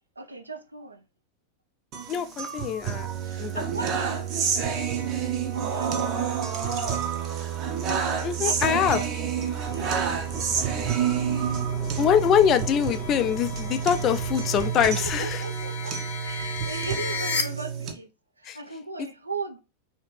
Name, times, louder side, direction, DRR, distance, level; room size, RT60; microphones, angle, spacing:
voice 1, 0.2-1.0 3.2-7.1 8.4-11.1 14.6-16.0 16.2-18.1 18.4-19.6, right 3 dB, 80° right, 0.5 m, -39 dB
sound 1, 1.9-17.9, right 7 dB, 35° right, 0.7 m, -29 dB
voice 2, 2.1-3.1 3.4-3.6 8.2-9.0 12.0-15.4 18.4-18.6, left 9 dB, 30° left, 0.4 m, -23 dB
sound 2, 6.5-17.4, left 6 dB, 65° left, 0.7 m, -38 dB
sound 3, 9.7-14.7, left 1 dB, 5° left, 0.7 m, -41 dB
3.2 x 2.8 x 3.1 m
figure-of-eight pair, 90°, 0 cm